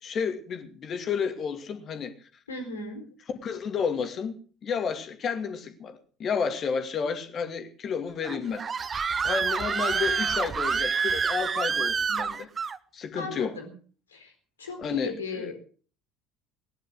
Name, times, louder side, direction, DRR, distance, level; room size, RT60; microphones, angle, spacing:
voice 1, 0.0-2.3 3.4-4.3 4.6-8.8 9.2-12.5 12.9-13.6 14.8-15.5, left 6 dB, 40° left, 2.5 m, -31 dB
voice 2, 2.5-3.1 13.1-13.7 14.1-14.3 14.6-15.5, left 3 dB, 80° left, 4.1 m, -36 dB
Screaming, 8.2-12.8, right 5 dB, 30° right, 0.9 m, -27 dB
19.0 x 11.0 x 6.4 m
figure-of-eight pair, 60°, 0 cm